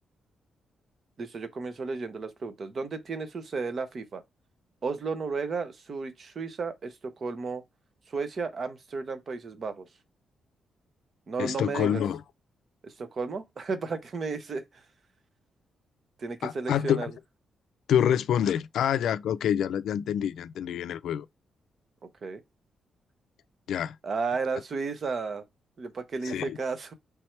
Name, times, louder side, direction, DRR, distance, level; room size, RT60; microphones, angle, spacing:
voice 1, 1.2-4.2 4.8-7.6 8.1-9.9 11.3-12.0 12.8-14.8 16.2-17.1 22.2-22.4 24.0-25.4 25.8-26.9, right 4 dB, 40° right, 0.8 m, -33 dB
voice 2, 11.4-12.2 16.4-17.1 17.9-21.3 23.7-23.9 26.3-26.6, left 9 dB, 80° left, 0.3 m, -27 dB
3.4 x 3.2 x 4.4 m
wide cardioid pair, 160°, 0 cm